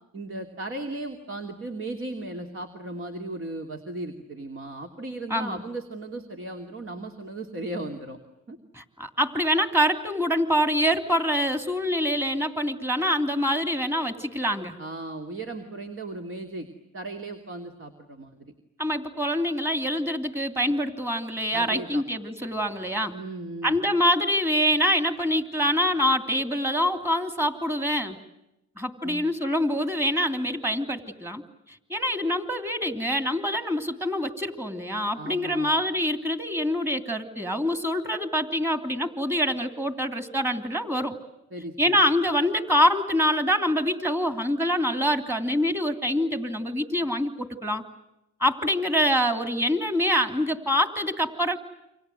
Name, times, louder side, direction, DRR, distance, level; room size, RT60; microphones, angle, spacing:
voice 1, 0.1-8.2 8.5-8.6 14.8-16.7 16.9-18.5 21.5-22.0 23.1-23.8 29.0-29.2 35.2-35.7 41.5-42.0, right 2 dB, 45° right, 4 dB, 2.9 m, -36 dB
voice 2, 5.3-5.6 8.7-14.8 18.8-23.1 23.6-28.2 28.8-31.4 31.9-41.1 41.8-47.8 48.4-51.6, equal, 10° right, 8 dB, 3.0 m, -25 dB
28.5 x 26.0 x 7.9 m, 0.89 s
cardioid pair, 90°, 30 cm